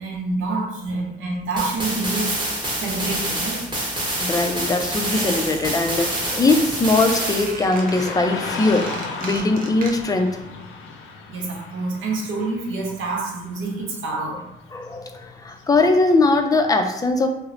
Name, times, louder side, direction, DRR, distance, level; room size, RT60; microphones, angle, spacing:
voice 1, 0.0-3.6 11.3-14.4, right 3 dB, 80° right, 0 dB, 0.7 m, -27 dB
sound 1, 1.6-7.5, right 1 dB, 20° right, 0.9 m, -26 dB
voice 2, 4.2-8.9 9.2-10.4 14.7-17.3, left 2 dB, 20° left, 5 dB, 0.3 m, -20 dB
Squeak, 5.1-5.9 6.2-6.5 6.9-10.3 10.5-10.6, right 4 dB, 45° right, 0.5 m, -36 dB
Car passing by / Traffic noise roadway noise, 7.7-16.7, left 4 dB, 85° left, 0.4 m, -36 dB
3.0 x 2.0 x 2.4 m, 0.88 s
cardioid pair, 90°, 20 cm